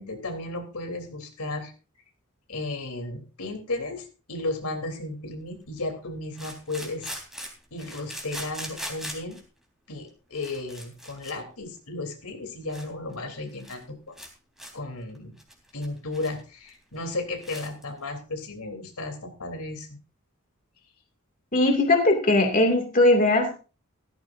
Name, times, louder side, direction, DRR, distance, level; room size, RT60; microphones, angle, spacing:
voice 1, 0.0-1.7 2.5-7.1 7.7-9.4 9.9-14.1 14.7-15.3 15.7-20.0, left 2 dB, 85° left, 4 dB, 3.6 m, -34 dB
sound 1, 4.5-4.6 6.3-9.4 10.1-10.2 10.4-11.3 11.6-11.8 12.3-12.4 12.7-12.9 13.1-13.2 13.5-13.8 14.2-14.3 14.6-14.7 15.1-16.4 16.7-16.8 17.1-17.2 17.4-17.8, equal, ahead, 3.5 m, -40 dB
voice 2, 21.5-23.5, left 2 dB, 40° left, 2 dB, 2.5 m, -20 dB
16.0 x 14.0 x 2.7 m, 0.35 s
head